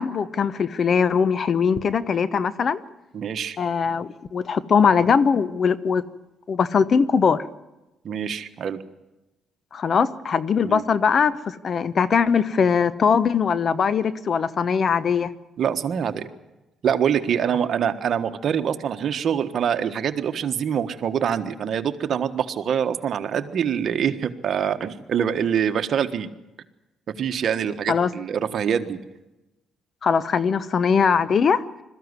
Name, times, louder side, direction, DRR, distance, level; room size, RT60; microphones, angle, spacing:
voice 1, 0.0-2.8 3.6-6.0 6.5-7.4 9.7-15.3 27.9-28.1 30.0-31.6, left 6 dB, 50° left, 16 dB, 1.0 m, -21 dB
voice 2, 3.1-3.6 8.0-8.8 10.6-10.8 15.6-16.3 16.8-26.3 27.2-29.0, right 8 dB, 60° right, 9 dB, 1.4 m, -25 dB
21.5 x 14.0 x 9.8 m, 1.0 s
cardioid pair, 90°, 0 cm